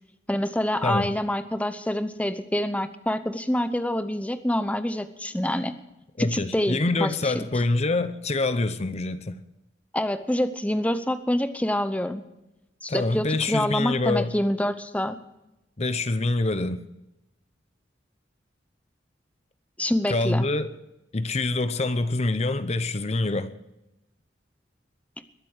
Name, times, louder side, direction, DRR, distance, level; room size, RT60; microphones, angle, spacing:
voice 1, 0.3-5.7 6.2-7.5 9.9-12.2 12.8-15.2 19.8-20.5, left 1 dB, 10° left, 0.8 m, -26 dB
voice 2, 0.8-1.1 6.2-9.4 12.9-14.3 15.8-16.8 20.1-20.7 21.1-23.6, left 2 dB, 35° left, 0.7 m, -25 dB
21.5 x 8.2 x 6.5 m
head